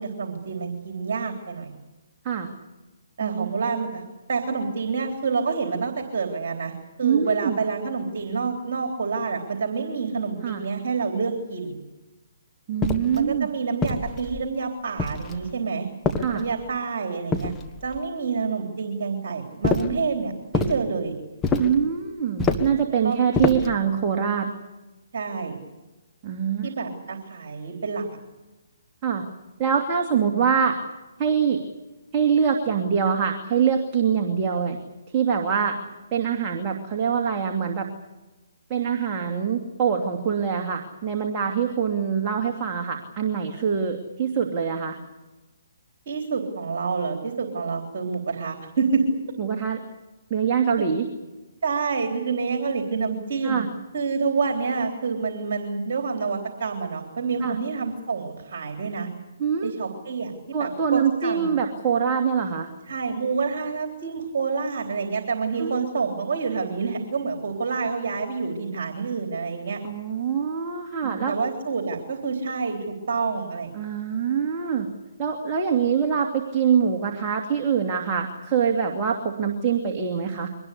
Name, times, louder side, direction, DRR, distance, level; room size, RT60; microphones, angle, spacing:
voice 1, 0.0-1.7 3.2-4.0 4.3-11.8 13.1-15.9 16.3-17.5 17.8-21.1 23.0-23.2 25.1-25.6 26.6-28.1 30.1-30.4 46.1-49.0 50.8-50.9 51.6-53.6 53.9-59.1 59.6-60.3 60.6-61.5 62.9-69.8 71.0-73.9, right 5 dB, 55° right, 4 dB, 3.6 m, -28 dB
voice 2, 7.0-7.6 10.4-10.6 12.7-13.5 16.2-16.4 21.6-24.5 26.2-26.7 29.0-29.2 29.6-30.8 31.2-31.6 32.1-34.8 35.1-35.8 36.1-37.9 38.7-45.0 49.4-49.8 50.3-51.1 53.4-53.7 57.4-57.6 59.4-59.7 60.5-62.7 65.6-65.8 69.8-71.3 73.8-74.9 75.2-80.5, right 7 dB, 30° right, 1 dB, 2.6 m, -24 dB
sound 1, 12.8-13.2 13.8-14.5 15.0-15.5 16.0-16.7 17.3-18.0 19.6-20.0 20.5-20.8 21.4-21.8 22.4-22.8 23.3-23.8, left 3 dB, 15° left, 1.5 m, -26 dB
24.0 x 19.5 x 8.4 m, 1.1 s
figure-of-eight pair, 135°, 0 cm